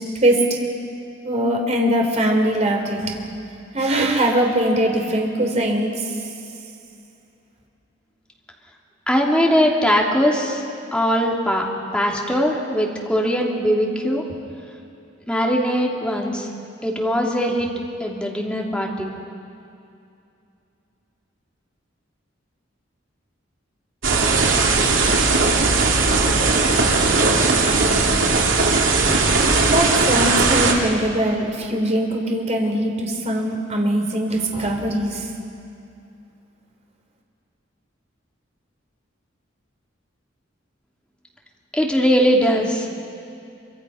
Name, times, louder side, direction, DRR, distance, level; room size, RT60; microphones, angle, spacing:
voice 1, 1.2-3.1 3.7-5.9 29.6-35.3, right 1 dB, 35° right, 1 dB, 3.6 m, -21 dB
voice 2, 9.1-10.6 10.9-14.3 15.3-16.5 16.8-17.7 18.0-19.1 41.7-42.9, equal, 5° left, -2 dB, 3.0 m, -20 dB
sound 1, 24.0-30.7, right 3 dB, 75° right, 2.9 m, -18 dB
27.5 x 25.0 x 5.8 m, 2.6 s
head